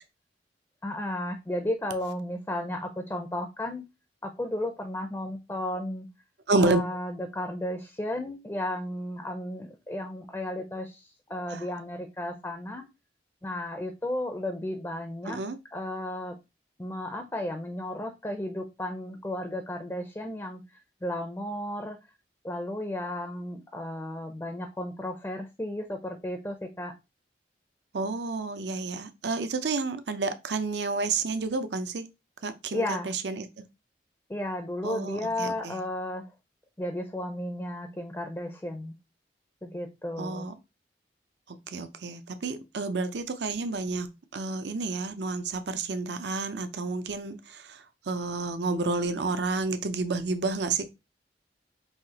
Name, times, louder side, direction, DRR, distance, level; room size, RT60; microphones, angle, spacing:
voice 1, 0.8-3.8 4.2-6.1 6.6-12.8 13.4-15.4 15.7-16.4 16.8-20.6 21.0-22.0 22.4-26.9 32.7-33.1 34.3-36.2 36.8-38.9 39.6-40.5, left 1 dB, 15° left, 0.5 m, -34 dB
voice 2, 6.5-6.8 11.5-11.7 15.2-15.6 27.9-32.0 32.4-33.5 34.8-35.8 40.2-40.5 41.7-44.1 44.3-50.9, right 3 dB, 75° right, 0.6 m, -30 dB
5.6 x 2.8 x 2.8 m
head